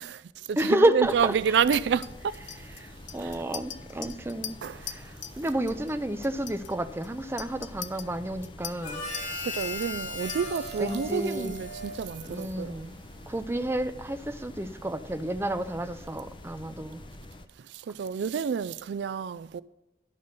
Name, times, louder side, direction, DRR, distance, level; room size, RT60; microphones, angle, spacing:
voice 1, 0.0-2.4 3.2-3.4 4.6-5.0 9.4-12.9 17.6-19.6, right 7 dB, 75° right, 0.3 m, -29 dB
voice 2, 0.6-1.6 2.8-9.0 10.8-11.6 12.3-13.0 13.3-17.0, right 1 dB, 15° right, 0.5 m, -30 dB
sound 1, 1.0-17.5, left 1 dB, 30° left, 0.6 m, -47 dB
Chink clink, 1.7-5.4 5.7-6.0 6.2-10.8, left 9 dB, 85° left, 0.7 m, -42 dB
Harmonica, 8.8-12.6, left 2 dB, 50° left, 4.1 m, -37 dB
12.5 x 5.4 x 6.5 m
head